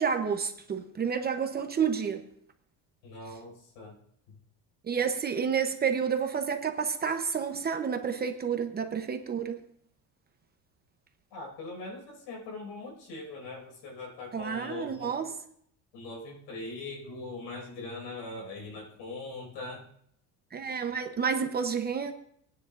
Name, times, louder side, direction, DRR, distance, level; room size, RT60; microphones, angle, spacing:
voice 1, 0.0-2.2 4.9-9.6 14.3-15.4 20.5-22.1, right 6 dB, 25° right, 0.7 m, -30 dB
voice 2, 3.0-4.0 4.3-4.4 11.3-15.1 15.9-19.9, left 3 dB, 75° left, 5.4 m, -41 dB
20.5 x 9.6 x 2.5 m
cardioid pair, 150°, 42 cm